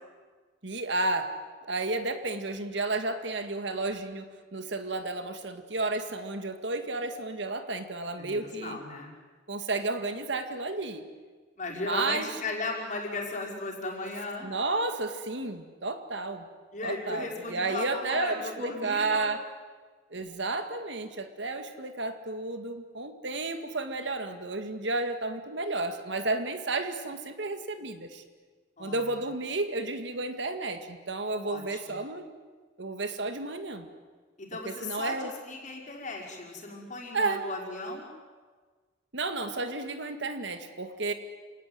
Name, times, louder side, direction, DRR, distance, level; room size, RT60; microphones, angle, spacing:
voice 1, 0.6-1.4 1.7-8.8 9.5-11.0 11.7-12.3 14.4-16.5 16.8-19.4 20.1-28.2 28.8-32.3 32.8-33.9 34.5-35.3 37.1-37.5 39.1-41.1, right 3 dB, 65° right, 8 dB, 2.0 m, -32 dB
voice 2, 8.2-9.1 11.6-14.5 16.7-19.3 28.8-29.1 31.5-32.0 34.4-38.1, left 3 dB, 40° left, -1 dB, 5.5 m, -36 dB
28.5 x 18.0 x 9.6 m, 1.4 s
head